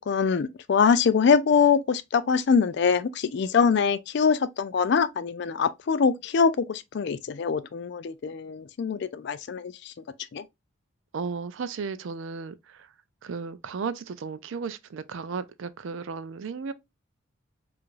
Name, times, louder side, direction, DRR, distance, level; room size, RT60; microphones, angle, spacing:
voice 1, 0.1-9.9 10.3-10.4, left 6 dB, 55° left, 0.3 m, -23 dB
voice 2, 11.1-12.9 13.2-16.7, right 5 dB, 65° right, 0.4 m, -34 dB
4.7 x 2.5 x 2.4 m
head